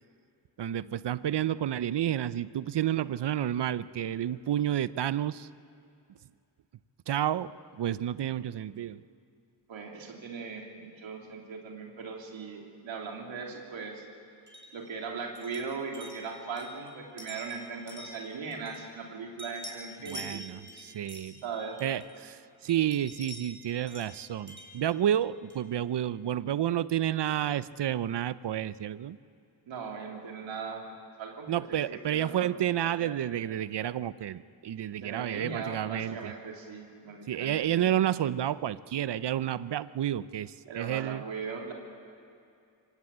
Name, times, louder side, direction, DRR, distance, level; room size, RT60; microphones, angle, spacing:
voice 1, 0.6-5.5 7.1-7.5 7.8-9.0 20.1-21.3 21.8-29.2 31.5-36.3 37.3-41.2, right 11 dB, 65° right, 17 dB, 0.7 m, -30 dB
voice 2, 9.7-14.0 14.7-20.4 21.4-21.8 29.6-30.8 31.2-32.5 32.9-33.2 35.0-37.9 40.7-41.7, right 5 dB, 85° right, 0 dB, 3.1 m, -39 dB
sound 1, 14.5-19.1 19.4-22.3 22.7-25.7, equal, 25° right, 5.1 m, -48 dB
25.0 x 18.0 x 8.7 m, 2.4 s
cardioid pair, 60°, 45 cm